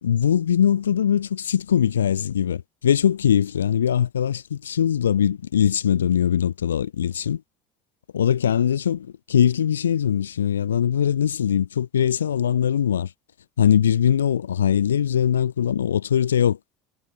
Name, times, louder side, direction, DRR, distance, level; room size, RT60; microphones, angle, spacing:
voice 1, 0.0-7.4 8.1-9.0 9.3-13.1 13.6-16.6, left 9 dB, 90° left, 1.5 m, -21 dB
hypercardioid pair, 70°, 0 cm